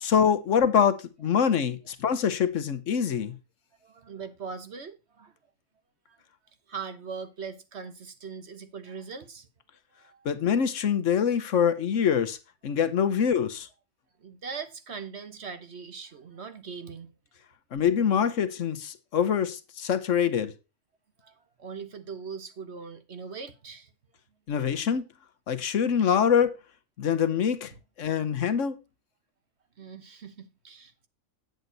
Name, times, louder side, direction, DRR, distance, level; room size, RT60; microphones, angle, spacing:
voice 1, 0.0-3.3 10.2-12.4 12.6-13.7 17.7-20.5 24.5-25.1 25.5-26.5 27.0-27.7 28.0-28.8, left 7 dB, 70° left, 1.2 m, -24 dB
voice 2, 3.8-5.3 6.1-6.2 6.7-9.5 9.9-10.3 14.2-17.1 21.2-23.9 27.7-27.8 29.8-31.1, right 5 dB, 55° right, 1.4 m, -41 dB
9.2 x 8.0 x 4.0 m
omnidirectional pair, 1.4 m